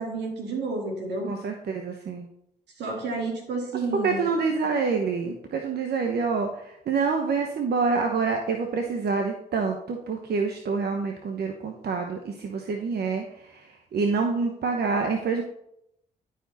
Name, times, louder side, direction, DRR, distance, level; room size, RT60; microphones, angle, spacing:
voice 1, 0.0-1.3 2.8-4.3, right 3 dB, 90° right, 1 dB, 2.1 m, -30 dB
voice 2, 1.3-2.3 4.0-15.4, right 4 dB, 70° right, 3 dB, 1.0 m, -27 dB
11.0 x 5.1 x 4.1 m, 0.77 s
supercardioid pair, 55°, 17 cm